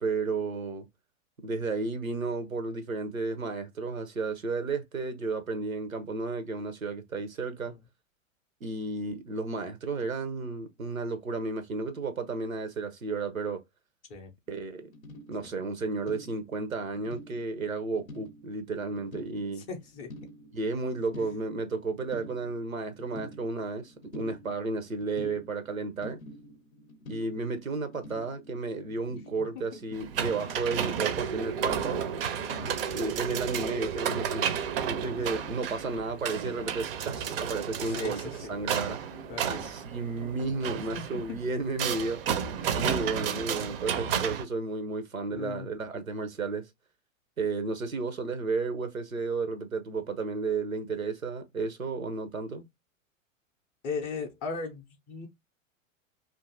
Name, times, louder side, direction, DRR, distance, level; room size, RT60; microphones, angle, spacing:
voice 1, 0.0-0.8 1.4-7.7 8.6-13.6 14.5-14.9 15.3-19.6 20.5-26.2 27.1-32.0 32.9-34.5 34.8-38.2 38.5-39.0 39.4-42.2 42.7-46.7 47.4-52.7, right 3 dB, 90° right, 0.6 m, -33 dB
sound 1, 14.8-34.3, left 1 dB, 85° left, 0.6 m, -48 dB
voice 2, 19.6-20.1 29.5-29.8 33.0-33.1 37.8-38.5 39.3-39.7 40.9-41.0 41.3-41.4 42.6-42.7 45.3-45.7 53.8-55.3, left 5 dB, 20° left, 0.4 m, -38 dB
sound 2, 29.9-44.4, right 8 dB, 50° right, 0.4 m, -32 dB
2.5 x 2.5 x 2.5 m
figure-of-eight pair, 95°, 40 cm